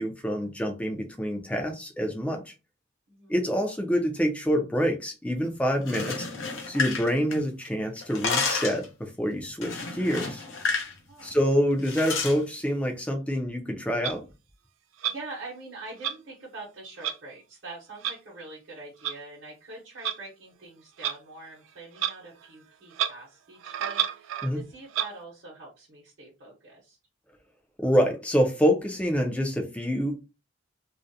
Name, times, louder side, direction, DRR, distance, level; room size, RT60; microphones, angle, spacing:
voice 1, 0.0-2.5 3.3-6.3 6.7-10.4 11.2-14.2 24.4-24.6 27.8-30.2, equal, 5° left, 0.4 m, -26 dB
voice 2, 3.1-3.4 11.1-11.4 15.1-27.0, right 2 dB, 65° right, 0.9 m, -44 dB
sound 1, 5.8-7.7 8.0-8.9 9.6-10.9 11.2-11.4 11.8-12.4, left 4 dB, 80° left, 0.6 m, -30 dB
Clock, 14.0-14.2 15.0-15.2 16.0-16.1 17.0-17.2 18.0-18.2 19.0-19.1 20.0-20.2 21.0-21.2 22.0-22.2 22.4-22.5 22.9-23.1 23.6-24.5 24.9-25.1, right 10 dB, 85° right, 0.3 m, -29 dB
2.4 x 2.0 x 2.6 m
head